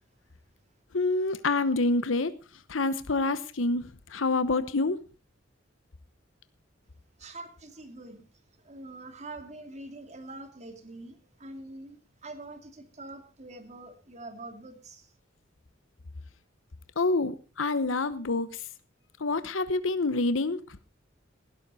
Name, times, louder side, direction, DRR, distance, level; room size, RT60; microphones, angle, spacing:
voice 1, 0.9-2.3 2.7-3.8 4.1-5.0 17.0-18.5 19.2-20.6, left 3 dB, 90° left, 13 dB, 1.0 m, -27 dB
voice 2, 7.2-8.2 8.6-15.1, right 2 dB, 35° right, 7 dB, 2.4 m, -44 dB
19.5 x 12.0 x 4.2 m, 0.33 s
head